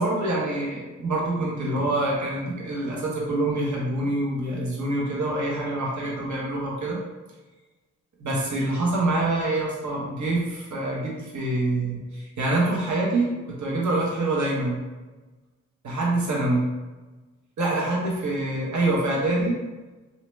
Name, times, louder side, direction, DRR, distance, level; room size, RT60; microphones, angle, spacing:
voice 1, 0.0-7.0 8.2-14.8 15.8-16.6 17.6-19.6, right 2 dB, 55° right, -4 dB, 1.2 m, -25 dB
2.9 x 2.9 x 3.2 m, 1.2 s
supercardioid pair, 40°, 35 cm